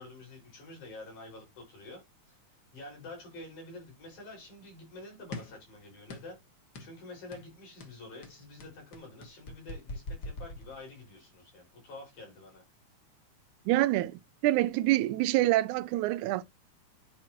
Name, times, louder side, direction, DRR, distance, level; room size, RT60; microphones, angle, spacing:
voice 1, 0.0-2.0 2.3-2.4 2.7-6.4 6.8-12.6, left 2 dB, 80° left, 6.8 m, -48 dB
sound 1, 5.3-5.6 6.1-6.4 6.7-7.0 7.3-7.5 7.8-11.1, left 2 dB, 45° left, 1.5 m, -43 dB
voice 2, 13.7-16.4, right 16 dB, 85° right, 2.0 m, -26 dB
10.5 x 4.6 x 2.9 m
omnidirectional pair, 3.4 m